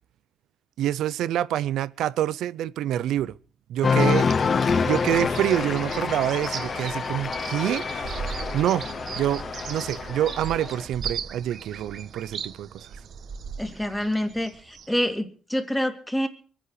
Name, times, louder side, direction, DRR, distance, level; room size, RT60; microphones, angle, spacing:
voice 1, 0.8-3.4 3.7-4.3 4.8-8.9 9.1-12.9, right 12 dB, 85° right, 0.6 m, -27 dB
Cheering, 3.8-10.9, left 5 dB, 40° left, 0.7 m, -27 dB
sound 1, 4.0-15.2, right 6 dB, 60° right, 1.6 m, -37 dB
voice 2, 13.6-16.3, equal, 5° left, 2.4 m, -27 dB
24.0 x 10.0 x 4.9 m
cardioid pair, 110°, 0 cm